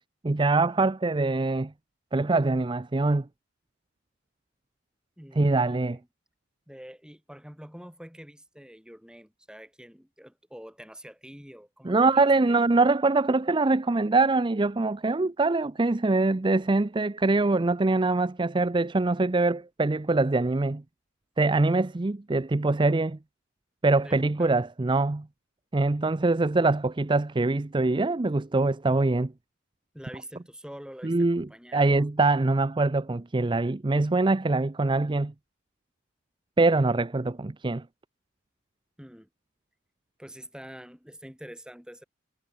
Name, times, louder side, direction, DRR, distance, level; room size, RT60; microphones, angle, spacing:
voice 1, 0.2-1.7 2.1-3.3 5.4-6.0 11.8-20.8 21.4-23.2 23.8-25.3 25.7-29.3 31.0-31.5 31.7-35.3 36.6-37.8, right 3 dB, 25° right, 0.5 m, -24 dB
voice 2, 5.2-6.1 6.7-12.6 24.0-24.6 29.9-32.1 39.0-39.3 40.2-42.0, equal, 5° right, 5.3 m, -46 dB
head